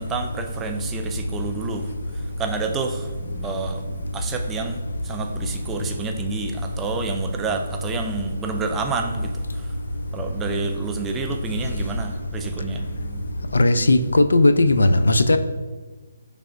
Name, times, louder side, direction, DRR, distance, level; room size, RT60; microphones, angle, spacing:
voice 1, 0.0-1.8 2.4-3.8 4.1-9.3 10.1-13.2, right 4 dB, 10° right, 0.3 m, -29 dB
voice 2, 13.5-15.4, left 2 dB, 90° left, 0.3 m, -16 dB
6.1 x 3.3 x 2.5 m
hypercardioid pair, 160°, 0 cm